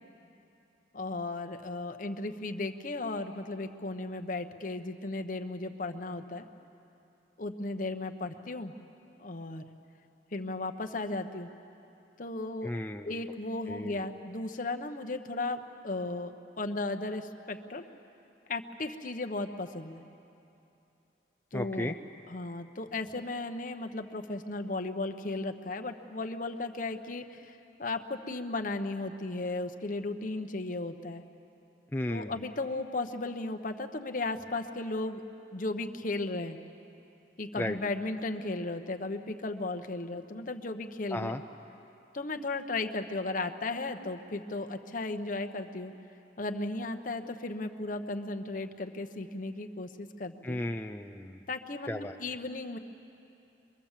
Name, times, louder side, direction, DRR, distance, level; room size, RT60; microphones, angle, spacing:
voice 1, 0.9-6.5 7.4-8.7 9.2-9.7 10.3-11.5 12.2-12.7 13.0-17.8 18.5-20.0 21.5-21.9 22.3-31.2 32.1-35.2 35.5-36.6 37.4-41.4 42.1-45.9 46.4-50.6 51.5-52.8, left 2 dB, 45° left, 6 dB, 1.0 m, -35 dB
voice 2, 12.6-13.1 13.7-14.0 21.5-22.0 31.9-32.4 37.6-37.8 41.1-41.4 50.4-51.4 51.9-52.2, left 1 dB, 10° left, 4 dB, 0.5 m, -34 dB
24.5 x 23.5 x 7.4 m, 2.8 s
head